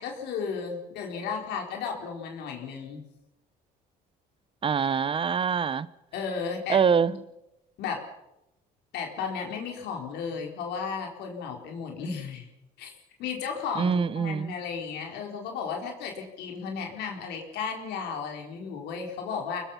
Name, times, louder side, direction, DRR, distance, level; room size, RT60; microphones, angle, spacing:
voice 1, 0.0-3.0 6.1-6.8 7.1-7.2 7.8-8.0 8.9-12.5 12.8-12.9 13.2-19.6, left 6 dB, 80° left, 2 dB, 4.4 m, -34 dB
voice 2, 4.6-5.9 6.7-7.1 13.8-14.5, right 6 dB, 30° right, 18 dB, 0.8 m, -24 dB
24.5 x 20.0 x 5.8 m, 0.91 s
cardioid pair, 110°, 17 cm